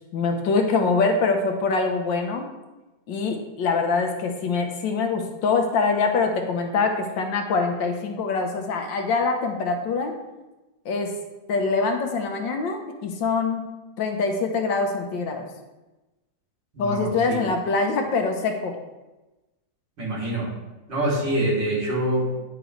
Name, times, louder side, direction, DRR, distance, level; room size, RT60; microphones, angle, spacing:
voice 1, 0.1-2.5 3.1-10.2 10.9-11.2 11.5-13.7 14.0-15.5 16.8-18.8, left 4 dB, 85° left, 4 dB, 1.7 m, -24 dB
voice 2, 16.7-17.5 20.0-20.5 20.9-22.3, right 1 dB, 80° right, -6 dB, 3.6 m, -25 dB
9.9 x 7.7 x 3.2 m, 1.1 s
omnidirectional pair, 2.0 m